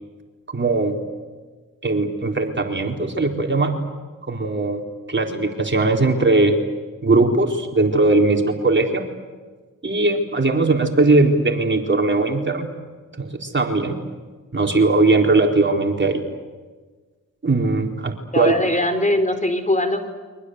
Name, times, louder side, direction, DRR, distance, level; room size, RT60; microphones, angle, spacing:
voice 1, 0.5-1.0 1.8-3.7 4.3-4.8 5.1-6.6 7.0-9.0 9.8-12.7 13.2-13.9 14.5-16.2 17.4-18.5, right 2 dB, 30° right, 2 dB, 4.3 m, -19 dB
voice 2, 18.3-20.1, left 1 dB, 20° left, 9 dB, 4.4 m, -21 dB
29.5 x 24.5 x 8.2 m, 1.4 s
hypercardioid pair, 40°, 37 cm